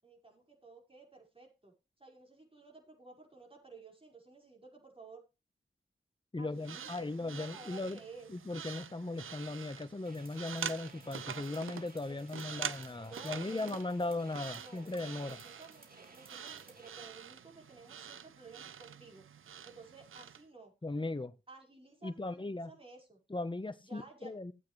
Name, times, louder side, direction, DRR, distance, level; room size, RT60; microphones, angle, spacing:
voice 1, 0.0-5.2 6.4-8.3 12.1-12.7 13.0-14.1 14.5-19.2 19.6-20.7 21.5-23.2 23.8-24.3, right 3 dB, 25° right, 5.4 m, -54 dB
voice 2, 6.3-8.0 8.3-15.4 20.8-21.3 22.0-22.7 23.3-24.5, left 2 dB, 25° left, 1.1 m, -38 dB
sound 1, 6.6-20.4, right 8 dB, 85° right, 0.6 m, -46 dB
sound 2, 10.0-16.9, right 2 dB, 45° right, 2.3 m, -58 dB
15.5 x 8.3 x 3.3 m
cardioid pair, 45°, 20 cm